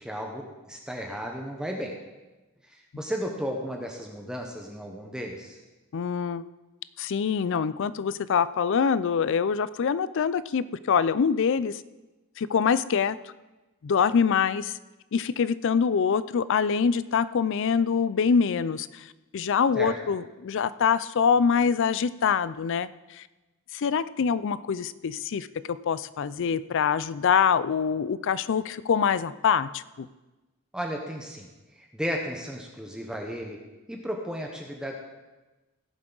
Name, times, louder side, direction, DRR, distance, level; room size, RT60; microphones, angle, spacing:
voice 1, 0.0-1.9 2.6-5.6 19.7-19.9 30.7-33.6 33.9-35.0, equal, 5° right, 1 dB, 0.9 m, -34 dB
voice 2, 5.9-6.5 7.0-11.8 12.4-13.2 13.8-14.8 15.1-23.2 23.7-30.1, left 6 dB, 60° left, 17 dB, 0.4 m, -25 dB
17.0 x 7.4 x 3.9 m, 1.1 s
head